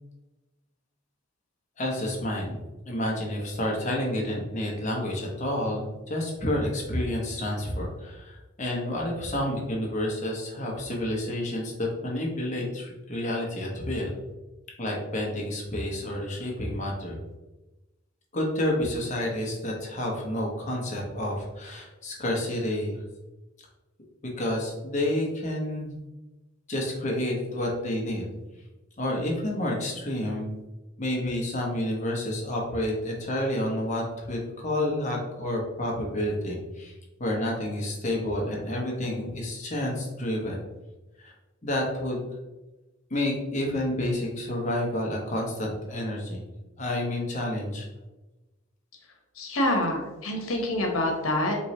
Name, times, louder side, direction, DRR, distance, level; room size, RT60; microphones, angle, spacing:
voice 1, 1.8-2.6 2.9-14.1 14.8-17.2 18.3-23.0 24.4-26.0 26.7-28.3 29.0-30.6 31.0-36.9 37.2-40.6 41.2-41.3 41.6-42.3 43.1-46.4 46.8-47.9, left 1 dB, 35° left, -1 dB, 0.9 m, -29 dB
voice 2, 49.4-51.6, left 1 dB, 85° left, 2 dB, 1.0 m, -26 dB
4.5 x 3.1 x 2.7 m, 1.1 s
head